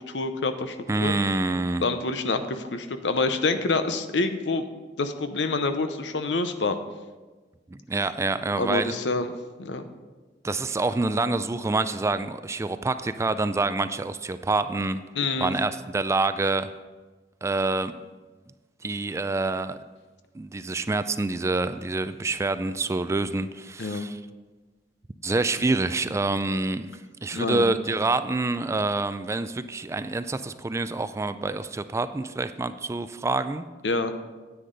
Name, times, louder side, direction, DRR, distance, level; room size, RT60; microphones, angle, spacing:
voice 1, 0.1-1.1 1.8-4.7 5.0-6.8 8.6-9.3 9.6-9.8 15.1-15.5 23.8-24.1 27.3-27.8 33.8-34.1, left 3 dB, 75° left, 9 dB, 0.8 m, -27 dB
voice 2, 0.9-1.9 7.7-8.9 10.4-15.0 15.4-16.7 17.4-17.9 18.8-19.8 20.3-24.2 25.2-26.9 27.2-33.7, right 3 dB, 15° right, 12 dB, 0.3 m, -27 dB
9.9 x 9.4 x 4.0 m, 1.3 s
head